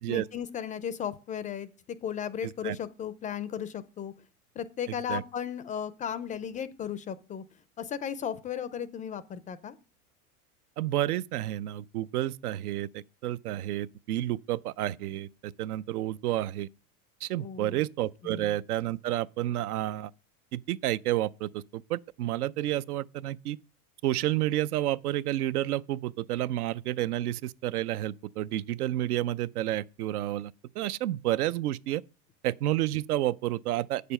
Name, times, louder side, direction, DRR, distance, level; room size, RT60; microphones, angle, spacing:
voice 1, 0.1-1.7 2.0-4.1 4.6-7.4 7.8-9.8 17.4-17.8 18.2-18.5, left 8 dB, 20° left, 0.3 m, -35 dB
voice 2, 2.4-2.8 4.9-5.2 10.8-16.7 17.2-20.1 20.5-23.6 24.0-32.0 32.4-34.1, right 14 dB, 85° right, 0.6 m, -30 dB
8.1 x 6.7 x 5.5 m
hypercardioid pair, 110°, 44 cm